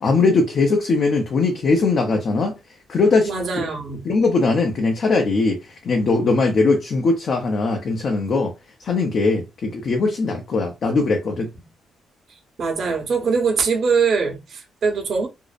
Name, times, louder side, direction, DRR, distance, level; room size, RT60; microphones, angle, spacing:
voice 1, 0.0-2.6 2.9-3.3 3.6-3.7 4.0-5.6 5.8-8.5 8.8-11.5, left 3 dB, 55° left, 0.6 m, -20 dB
voice 2, 3.2-4.0 12.6-15.3, right 5 dB, 55° right, 0.9 m, -22 dB
2.6 x 2.0 x 2.4 m
cardioid pair, 90°, 0 cm